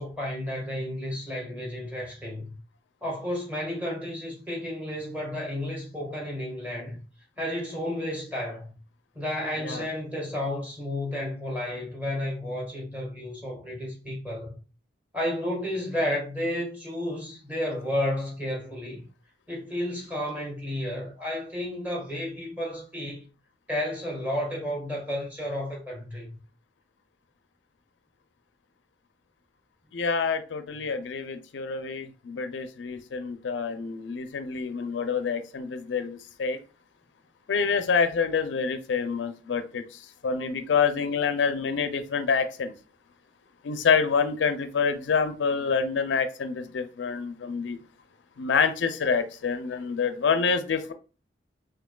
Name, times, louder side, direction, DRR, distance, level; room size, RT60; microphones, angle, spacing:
voice 1, 0.0-2.6 3.0-7.0 7.4-8.8 9.1-14.5 15.1-19.0 19.5-23.3 23.7-26.4, left 1 dB, 10° right, 1.5 m, -32 dB
voice 2, 29.9-36.6 37.5-42.7 43.6-47.8 48.4-50.9, left 5 dB, 85° left, 0.4 m, -27 dB
5.9 x 2.7 x 2.2 m
head